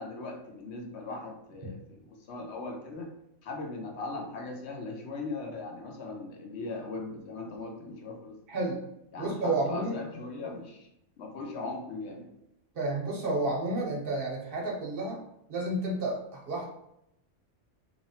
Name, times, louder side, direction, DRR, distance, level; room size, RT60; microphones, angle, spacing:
voice 1, 0.0-3.1 3.4-8.4 9.1-10.9 11.2-12.3, left 3 dB, 65° left, 2 dB, 0.8 m, -39 dB
voice 2, 8.5-8.8 9.2-10.1 12.7-15.2 15.5-16.6, right 2 dB, 50° right, -2 dB, 0.9 m, -31 dB
2.9 x 2.5 x 2.7 m, 0.82 s
omnidirectional pair, 1.3 m